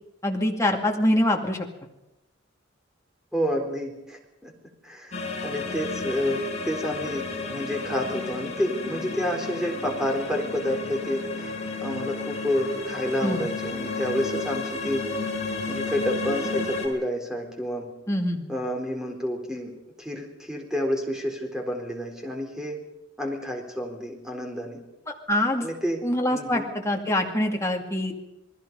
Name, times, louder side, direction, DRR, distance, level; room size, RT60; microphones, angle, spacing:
voice 1, 0.2-1.7 13.2-13.5 18.1-18.5 25.3-25.7 26.0-28.2, left 1 dB, 15° left, 1 dB, 2.4 m, -24 dB
voice 2, 3.3-4.5 4.8-5.2 5.4-11.5 11.8-15.1 15.7-17.9 18.5-19.7 20.0-22.8 23.2-24.8 25.6-26.0 26.3-26.7, equal, 5° right, 1 dB, 3.9 m, -29 dB
sound 1, 5.1-16.9, left 3 dB, 35° left, 5.4 m, -32 dB
28.5 x 20.0 x 5.4 m, 0.93 s
head